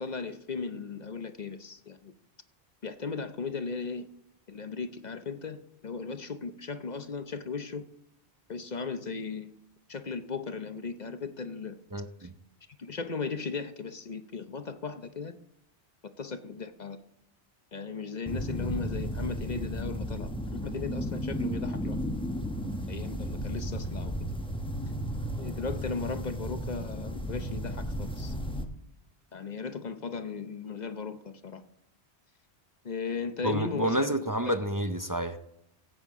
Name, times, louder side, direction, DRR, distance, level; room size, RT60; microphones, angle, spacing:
voice 1, 0.0-2.1 2.8-4.1 4.5-7.9 8.5-9.5 9.9-11.8 12.2-12.3 12.8-15.4 16.2-17.0 17.7-22.0 22.9-24.1 25.4-28.3 29.3-31.6 32.8-34.1, left 4 dB, 45° left, 9 dB, 0.8 m, -36 dB
voice 2, 11.9-12.3 33.4-35.4, right 1 dB, 25° right, 8 dB, 0.5 m, -29 dB
sound 1, 18.3-28.7, equal, 5° left, 0.9 m, -34 dB
16.0 x 8.7 x 3.6 m, 0.78 s
omnidirectional pair, 1.2 m